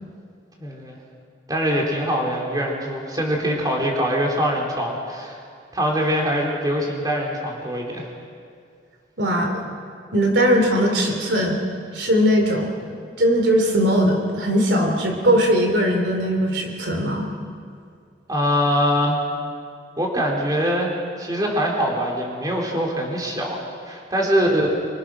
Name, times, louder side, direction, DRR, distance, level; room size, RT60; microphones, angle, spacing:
voice 1, 0.6-1.0 1.5-5.4 5.7-8.1 18.3-19.2 20.0-20.9 21.2-23.6 23.9-24.7, equal, 20° right, -1 dB, 3.8 m, -23 dB
voice 2, 9.2-9.6 10.1-11.6 11.9-17.3, equal, 75° right, 3 dB, 3.3 m, -20 dB
26.5 x 25.0 x 6.3 m, 2.3 s
head